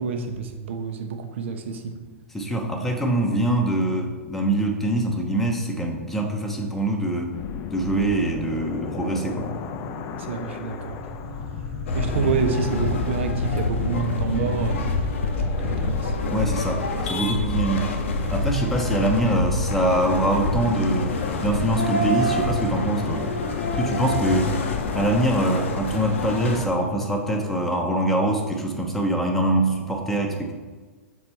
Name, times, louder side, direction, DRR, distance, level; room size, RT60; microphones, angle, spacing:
voice 1, 0.0-2.0 10.2-11.0 11.9-14.8 15.6-16.1, right 5 dB, 60° right, 5 dB, 0.8 m, -28 dB
voice 2, 2.3-7.3 7.7-9.5 12.2-12.3 16.3-18.0 18.3-23.2 23.8-24.5 24.9-30.5, right 1 dB, 5° left, 1 dB, 0.9 m, -24 dB
sound 1, 7.3-25.8, left 7 dB, 35° left, 0.5 m, -36 dB
sound 2, 8.6-23.0, right 2 dB, 80° right, 1.0 m, -42 dB
sound 3, 11.9-26.7, left 2 dB, 65° left, 0.8 m, -26 dB
6.4 x 4.3 x 4.4 m, 1.4 s
figure-of-eight pair, 100°, 7 cm